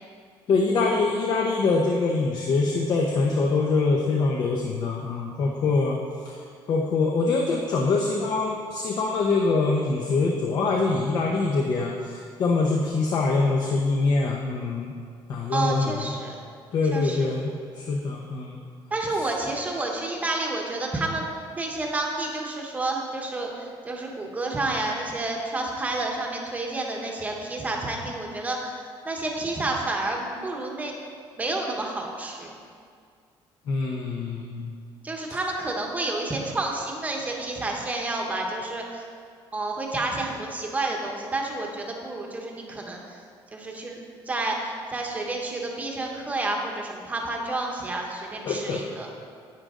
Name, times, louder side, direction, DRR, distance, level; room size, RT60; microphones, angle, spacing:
voice 1, 0.5-6.0 6.2-6.4 6.7-14.9 15.3-16.1 16.7-18.6 33.7-34.7 48.4-48.8, left 3 dB, 45° left, 0 dB, 0.8 m, -24 dB
voice 2, 15.5-16.4 16.9-17.3 18.9-21.2 21.5-28.8 29.0-30.9 31.4-32.6 35.0-39.1 39.5-43.2 43.5-44.0 44.3-49.1, right 2 dB, 15° right, 0 dB, 1.0 m, -30 dB
10.5 x 8.9 x 3.7 m, 2.2 s
cardioid pair, 175°, 10 cm